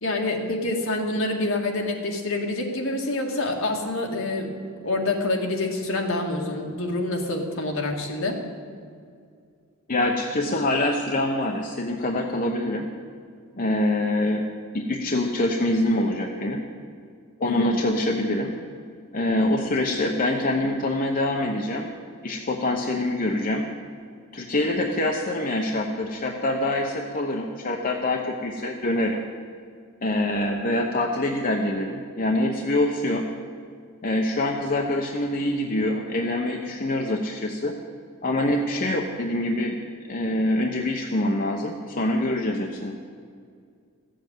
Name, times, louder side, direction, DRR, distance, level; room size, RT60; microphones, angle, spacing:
voice 1, 0.0-4.5 4.8-8.4 17.4-17.7, left 2 dB, 65° left, 1 dB, 2.1 m, -27 dB
voice 2, 9.9-12.9 13.6-14.5 14.7-16.6 17.4-18.6 19.1-21.9 22.2-23.6 24.3-29.2 30.0-33.3 34.0-37.7 38.2-39.8 40.1-42.9, left 1 dB, 40° left, 1 dB, 0.9 m, -25 dB
14.5 x 7.6 x 9.1 m, 2.2 s
head